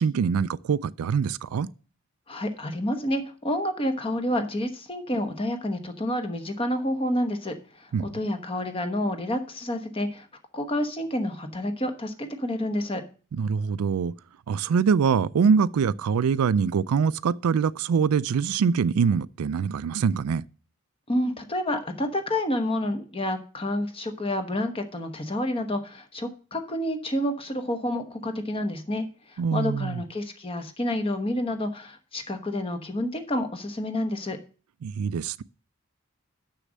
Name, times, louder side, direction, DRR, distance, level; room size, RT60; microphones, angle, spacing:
voice 1, 0.0-1.7 7.9-8.1 13.3-14.1 14.5-20.4 29.4-30.0 34.8-35.4, right 6 dB, 90° right, 0.4 m, -24 dB
voice 2, 2.3-10.3 10.5-13.0 21.1-34.4, left 1 dB, 25° left, 1.0 m, -29 dB
6.6 x 6.4 x 7.3 m
head